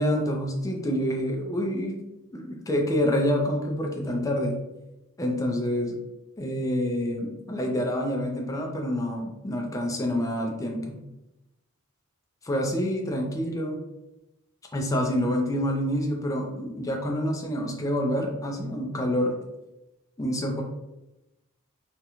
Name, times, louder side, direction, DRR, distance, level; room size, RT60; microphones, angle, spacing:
voice 1, 0.0-2.0 2.3-4.6 5.2-6.0 6.4-11.0 12.4-13.8 14.7-19.4 20.2-20.6, equal, 15° left, 1 dB, 0.3 m, -27 dB
2.4 x 2.1 x 2.9 m, 0.97 s
head